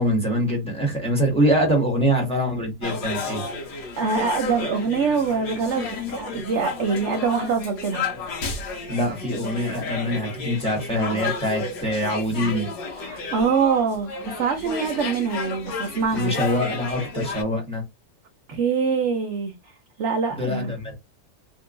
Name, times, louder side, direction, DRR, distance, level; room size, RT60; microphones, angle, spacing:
voice 1, 0.0-3.4 8.9-12.7 16.1-17.8 20.3-20.9, equal, 5° left, 1.3 m, -24 dB
sound 1, 2.8-17.4, left 4 dB, 85° left, 1.6 m, -32 dB
voice 2, 4.0-8.1 12.9-16.4 18.5-20.7, right 5 dB, 65° right, 0.7 m, -24 dB
3.5 x 2.8 x 2.5 m
omnidirectional pair, 1.9 m